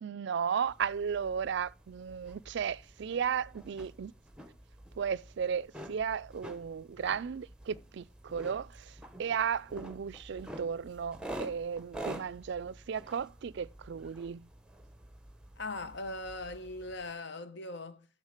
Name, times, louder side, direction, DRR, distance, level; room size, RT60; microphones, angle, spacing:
voice 1, 0.0-4.1 5.0-14.5, right 7 dB, 60° right, 0.4 m, -35 dB
sound 1, 0.6-17.1, right 1 dB, 5° right, 0.8 m, -48 dB
voice 2, 15.6-18.1, left 2 dB, 60° left, 1.0 m, -40 dB
7.3 x 6.4 x 6.4 m
head